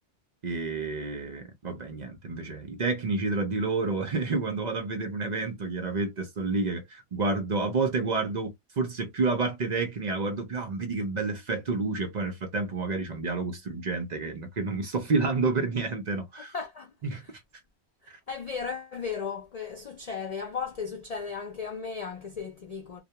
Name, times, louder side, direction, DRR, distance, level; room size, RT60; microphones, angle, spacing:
voice 1, 0.4-16.5 17.0-17.4 18.1-18.2, right 3 dB, 55° right, 0.5 m, -29 dB
voice 2, 16.5-16.9 17.2-17.3 18.0-23.0, left 6 dB, 70° left, 0.3 m, -35 dB
2.2 x 2.1 x 2.8 m
omnidirectional pair, 1.3 m